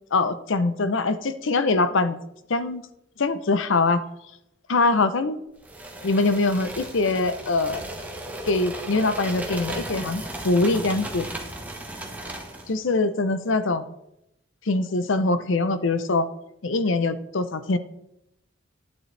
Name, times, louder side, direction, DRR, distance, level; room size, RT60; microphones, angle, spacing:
voice 1, 0.1-2.2 2.5-2.8 3.2-4.0 4.7-5.4 6.0-7.8 8.4-11.3 12.7-13.9 14.7-16.3 16.6-17.8, left 3 dB, 70° left, 12 dB, 0.7 m, -23 dB
sound 1, 5.6-12.7, right 1 dB, 10° right, 1.2 m, -36 dB
11.5 x 9.4 x 3.3 m, 0.84 s
head